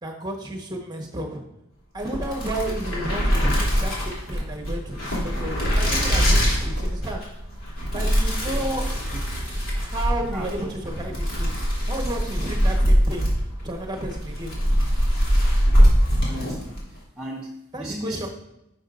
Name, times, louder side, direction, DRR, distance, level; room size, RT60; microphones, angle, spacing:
voice 1, 0.0-1.4 1.9-7.2 7.9-8.9 9.7-11.6 11.9-13.3 13.6-14.5 17.7-18.3, right 1 dB, 20° right, 1 dB, 1.2 m, -32 dB
sound 1, 2.0-16.9, equal, 70° left, 2.9 m, -22 dB
voice 2, 16.2-18.3, equal, 5° right, -3 dB, 0.5 m, -36 dB
11.0 x 6.7 x 2.5 m, 0.88 s
head